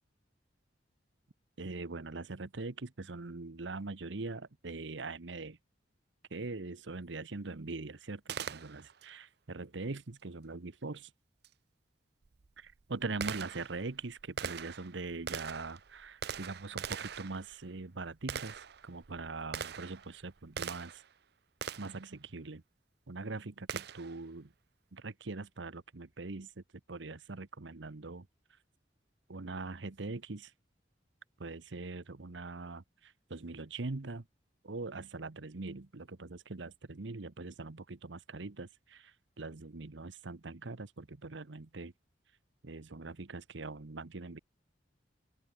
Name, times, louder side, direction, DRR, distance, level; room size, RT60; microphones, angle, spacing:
voice 1, 1.6-5.6 6.3-11.1 12.6-21.0 21.8-22.6 23.1-24.5 24.9-26.6 26.9-28.3 29.3-30.5 31.4-34.2 34.6-41.9 42.6-44.4, right 3 dB, 75° right, 1.0 m, -42 dB
Gunshot gunfire, 8.3-9.1 11.4-11.5 12.2-21.1 21.6-22.1 23.7-24.2, right 7 dB, 60° right, 0.6 m, -42 dB
open air
head